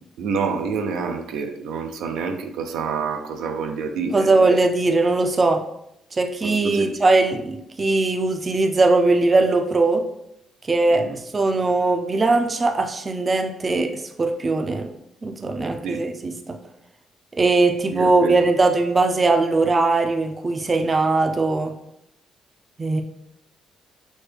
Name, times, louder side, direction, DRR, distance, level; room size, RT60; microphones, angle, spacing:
voice 1, 0.2-4.6 6.4-6.9 10.9-11.1 15.8-16.0 17.9-18.4, right 5 dB, 85° right, 5 dB, 0.4 m, -28 dB
voice 2, 4.1-5.6 6.1-10.0 10.7-14.9 15.2-16.6 17.4-21.7 22.8-23.0, right 3 dB, 30° right, 5 dB, 0.4 m, -20 dB
6.1 x 2.2 x 3.3 m, 0.79 s
cardioid pair, 90°, 0 cm